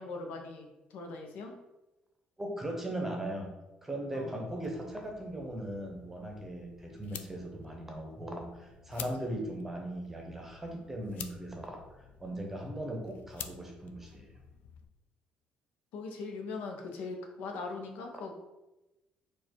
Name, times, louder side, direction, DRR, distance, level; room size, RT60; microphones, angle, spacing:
voice 1, 0.0-1.6 4.1-4.5 7.7-7.8 9.0-9.3 15.9-18.3, left 3 dB, 90° left, 3 dB, 0.8 m, -41 dB
voice 2, 2.4-3.5 3.8-11.8 12.2-14.3, right 1 dB, 10° right, 2 dB, 0.8 m, -38 dB
sound 1, 4.5-14.9, left 8 dB, 70° left, 0.3 m, -50 dB
4.5 x 2.4 x 4.4 m, 1.0 s
cardioid pair, 155°, 3 cm